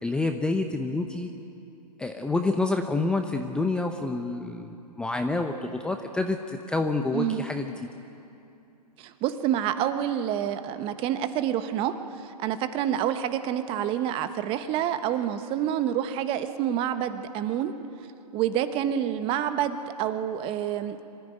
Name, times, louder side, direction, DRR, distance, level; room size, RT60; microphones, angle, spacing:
voice 1, 0.0-1.3 2.0-7.7, left 3 dB, 5° left, 5 dB, 0.7 m, -28 dB
voice 2, 7.1-7.4 9.0-12.0 12.2-17.7 18.3-21.0, right 10 dB, 25° right, 10 dB, 1.1 m, -28 dB
25.5 x 14.0 x 9.9 m, 2.7 s
hypercardioid pair, 130°, 21 cm